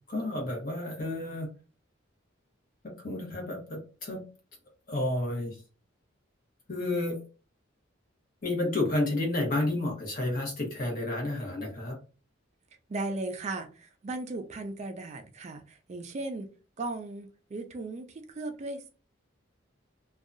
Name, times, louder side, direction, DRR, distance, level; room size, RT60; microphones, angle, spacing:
voice 1, 0.1-1.5 3.0-4.2 4.9-5.5 6.7-7.2 8.4-12.0, left 2 dB, 45° left, 1.1 m, -30 dB
voice 2, 12.9-16.5 16.8-18.9, right 2 dB, 35° right, 0.3 m, -37 dB
2.7 x 2.3 x 2.5 m
head